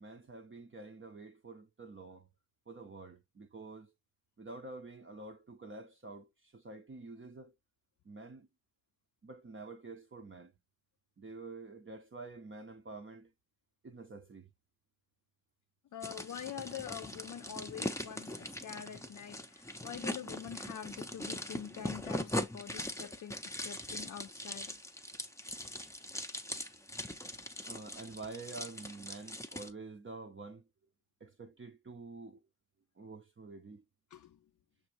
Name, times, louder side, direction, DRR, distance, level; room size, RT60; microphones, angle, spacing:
voice 1, 0.0-2.3 2.7-3.9 4.4-7.5 8.0-8.5 9.2-10.5 11.2-13.3 13.8-14.5 27.7-30.6 31.2-32.4 33.0-33.8, right 3 dB, 35° right, 0.6 m, -48 dB
voice 2, 15.9-24.8 34.1-34.5, left 9 dB, 50° left, 0.4 m, -45 dB
sound 1, 16.0-29.7, left 1 dB, 10° left, 0.6 m, -41 dB
6.1 x 2.5 x 3.0 m
cardioid pair, 55°, 38 cm